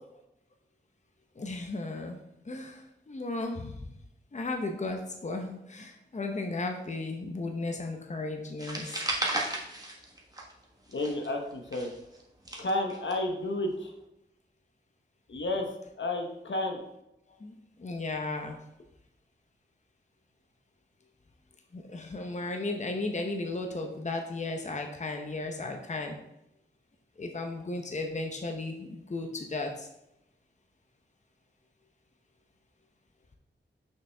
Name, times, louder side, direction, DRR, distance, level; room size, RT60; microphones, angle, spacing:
voice 1, 1.4-2.2 2.4-3.9 4.3-9.0 17.4-18.6 21.7-26.2 27.2-29.9, left 2 dB, 40° left, 3 dB, 0.8 m, -35 dB
sound 1, 8.6-10.6 10.9-13.1, right 1 dB, 20° right, 1.4 m, -34 dB
voice 2, 10.9-11.9 12.6-13.9 15.3-16.8, left 2 dB, 75° left, 3 dB, 1.1 m, -31 dB
6.3 x 5.7 x 3.4 m, 0.84 s
wide cardioid pair, 85°, 19 cm